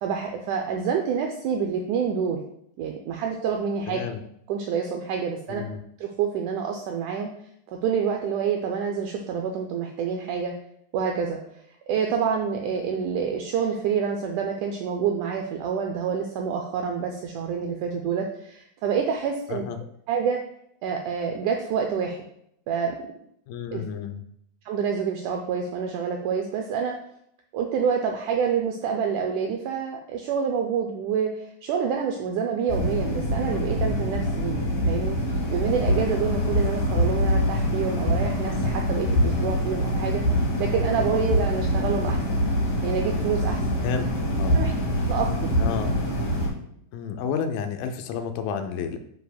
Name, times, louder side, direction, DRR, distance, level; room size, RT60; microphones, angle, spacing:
voice 1, 0.0-2.4 2.8-4.0 4.5-5.7 6.0-7.3 7.7-10.5 10.9-11.4 11.9-19.7 20.1-20.4 20.8-22.2 22.7-23.0 23.7-23.8 24.7-27.0 27.5-35.2 35.5-42.4 42.8-43.6 44.5-44.7 45.1-45.5, right 6 dB, 80° right, 2 dB, 1.8 m, -27 dB
voice 2, 3.9-4.2 5.5-5.8 19.5-19.8 23.5-24.2 43.8-44.1 44.4-44.6 45.6-46.0 46.9-49.0, left 6 dB, 90° left, 7 dB, 2.4 m, -30 dB
sound 1, 32.7-46.5, equal, 55° left, 3.0 m, -24 dB
9.3 x 4.8 x 2.3 m, 0.72 s
omnidirectional pair, 4.0 m